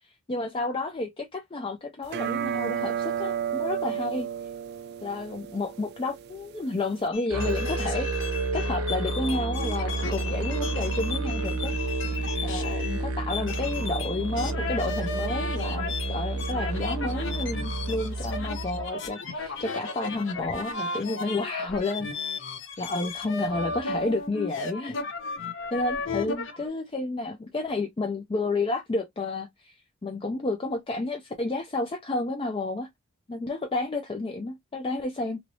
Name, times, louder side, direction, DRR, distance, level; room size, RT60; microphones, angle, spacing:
voice 1, 0.0-4.3 5.0-8.1 8.5-11.7 12.4-22.5 22.8-25.0 25.7-32.9 33.3-35.4, left 2 dB, 25° left, 0.4 m, -31 dB
sound 1, 2.1-7.1, right 8 dB, 50° right, 0.4 m, -32 dB
sound 2, 7.1-13.0 13.3-26.7, left 4 dB, 60° left, 0.8 m, -35 dB
Musical instrument, 7.3-18.9, right 2 dB, 90° right, 0.8 m, -30 dB
3.1 x 2.9 x 2.6 m
head